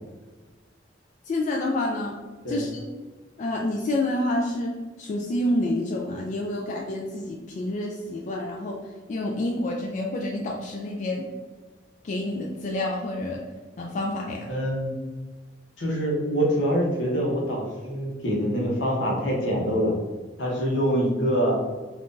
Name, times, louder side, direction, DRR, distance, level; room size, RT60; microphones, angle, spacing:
voice 1, 1.3-2.2 2.5-2.8 3.4-8.8 9.1-11.3 12.0-13.4 13.8-14.5, left 1 dB, 45° left, -1 dB, 0.3 m, -28 dB
voice 2, 14.5-15.0 15.8-20.0 20.4-21.6, equal, 75° left, -2 dB, 0.9 m, -25 dB
2.6 x 2.4 x 3.6 m, 1.3 s
head